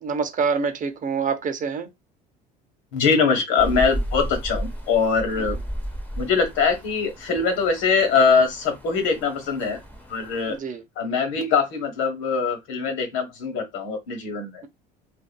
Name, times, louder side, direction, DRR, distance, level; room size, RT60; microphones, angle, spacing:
voice 1, 0.0-1.9 5.4-5.5 10.5-10.8, right 5 dB, 40° right, 0.7 m, -26 dB
voice 2, 2.9-5.6 6.1-9.8 10.1-10.6 11.0-14.7, left 5 dB, 65° left, 1.3 m, -22 dB
Rain, 3.6-10.6, equal, 10° left, 0.9 m, -34 dB
2.5 x 2.5 x 2.2 m
hypercardioid pair, 70°, 21 cm